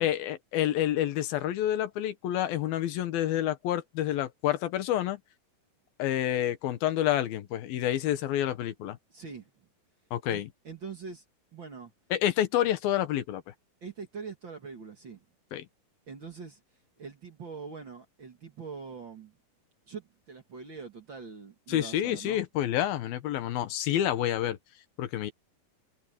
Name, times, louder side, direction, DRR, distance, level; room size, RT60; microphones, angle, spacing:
voice 1, 0.0-5.2 6.0-9.0 10.1-10.5 12.1-13.4 15.5-15.7 21.7-24.6 25.0-25.3, left 12 dB, 80° left, 3.0 m, -28 dB
voice 2, 9.1-9.7 10.3-11.2 11.5-11.9 13.8-15.2 16.1-16.6 17.0-19.3 19.9-22.4, right 5 dB, 40° right, 2.1 m, -43 dB
omnidirectional pair, 4.2 m